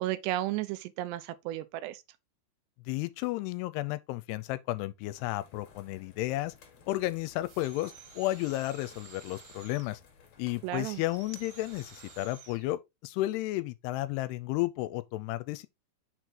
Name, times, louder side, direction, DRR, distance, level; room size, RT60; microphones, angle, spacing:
voice 1, 0.0-2.0 10.6-11.0, right 15 dB, 85° right, 2.8 m, -33 dB
voice 2, 2.9-6.5 6.9-10.0 10.4-15.7, left 17 dB, 85° left, 2.6 m, -33 dB
sound 1, 5.1-12.3, left 6 dB, 55° left, 2.1 m, -58 dB
sound 2, 7.4-10.0 10.8-12.7, right 6 dB, 55° right, 1.8 m, -52 dB
6.6 x 4.6 x 3.8 m
omnidirectional pair, 4.8 m